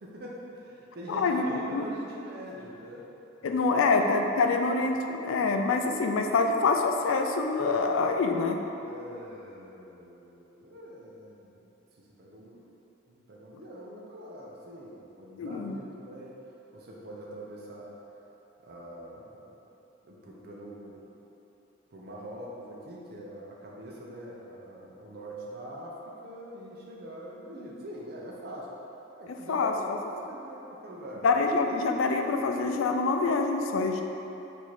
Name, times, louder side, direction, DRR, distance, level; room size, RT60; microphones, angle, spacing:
voice 1, 0.0-3.1 3.4-3.9 8.8-12.7 13.1-16.5 16.7-17.9 18.6-19.7 20.0-21.2 21.9-28.7 29.1-31.3, equal, 50° right, -4 dB, 0.6 m, -44 dB
voice 2, 1.1-1.8 3.4-8.6 15.4-15.8 29.5-29.7 31.2-34.0, left 4 dB, 75° left, 4 dB, 0.4 m, -26 dB
4.7 x 2.7 x 4.2 m, 3.0 s
head